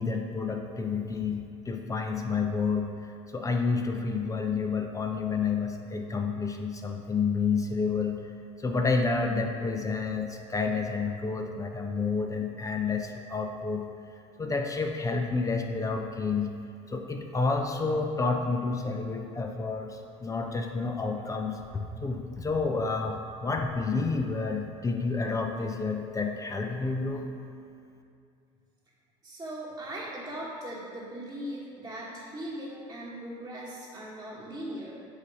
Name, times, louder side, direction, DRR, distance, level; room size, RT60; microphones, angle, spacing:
voice 1, 0.0-2.9 3.3-8.2 8.6-13.8 14.4-16.5 16.9-27.2, left 4 dB, 20° left, 3 dB, 0.6 m, -29 dB
voice 2, 29.2-35.0, right 1 dB, 15° right, -9 dB, 1.3 m, -39 dB
8.2 x 2.8 x 5.3 m, 2.5 s
supercardioid pair, 90°, 16 cm